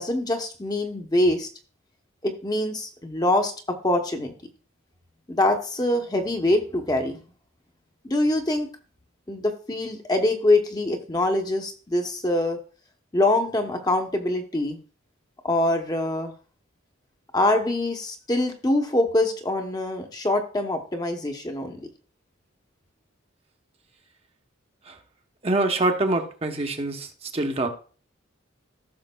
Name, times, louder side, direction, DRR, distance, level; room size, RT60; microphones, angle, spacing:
voice 1, 0.0-1.5 2.2-4.3 5.3-7.2 8.0-8.7 9.3-12.6 13.1-14.8 15.4-16.3 17.3-21.9, left 1 dB, 20° left, 4 dB, 0.8 m, -24 dB
voice 2, 25.4-27.7, right 2 dB, 30° right, 4 dB, 0.8 m, -25 dB
15.0 x 6.3 x 2.2 m, 0.39 s
head